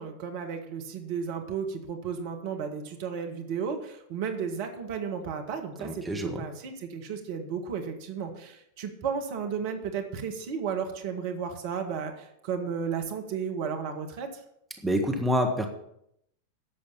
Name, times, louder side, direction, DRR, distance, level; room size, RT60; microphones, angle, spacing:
voice 1, 0.0-14.4, right 6 dB, 50° right, 5 dB, 1.8 m, -34 dB
voice 2, 5.8-6.4 14.8-15.7, equal, 5° right, 2 dB, 1.6 m, -27 dB
11.5 x 7.5 x 7.2 m, 0.75 s
figure-of-eight pair, 90°, 0 cm